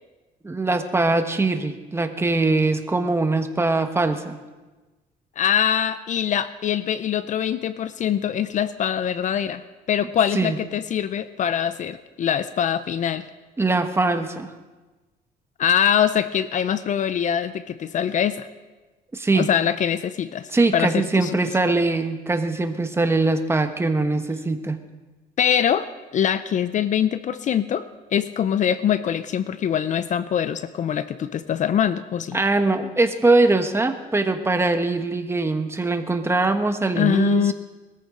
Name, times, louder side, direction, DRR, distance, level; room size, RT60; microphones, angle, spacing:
voice 1, 0.4-4.3 10.3-10.6 13.6-14.5 19.1-19.5 20.5-24.8 32.3-37.5, right 3 dB, 15° right, 7 dB, 1.2 m, -22 dB
voice 2, 5.4-9.6 9.9-13.3 15.6-18.5 19.4-21.3 25.4-32.4 37.0-37.5, left 9 dB, 45° left, 14 dB, 0.6 m, -23 dB
20.5 x 14.0 x 3.8 m, 1.2 s
cardioid pair, 110°, 17 cm